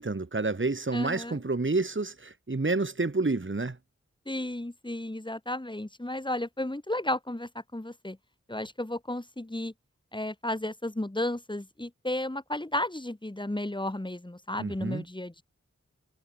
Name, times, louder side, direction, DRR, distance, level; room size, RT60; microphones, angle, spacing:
voice 1, 0.0-3.8 14.6-15.0, right 3 dB, 40° right, 2.0 m, -29 dB
voice 2, 0.9-1.4 4.3-8.2 8.5-9.7 10.1-15.4, left 1 dB, 15° left, 1.9 m, -33 dB
wide cardioid pair, 40°, 30 cm